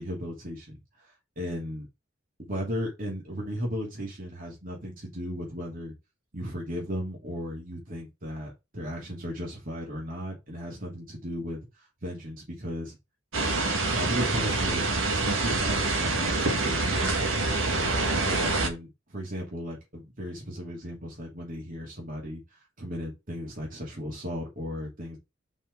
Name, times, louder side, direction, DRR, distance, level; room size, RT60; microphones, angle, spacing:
voice 1, 0.0-1.9 2.4-5.9 6.3-13.0 13.9-17.1 17.6-22.4 22.8-25.2, equal, 45° right, 2.8 m, -36 dB
sound 1, 13.3-18.7, right 3 dB, 85° right, 1.7 m, -26 dB
5.5 x 4.8 x 4.7 m
head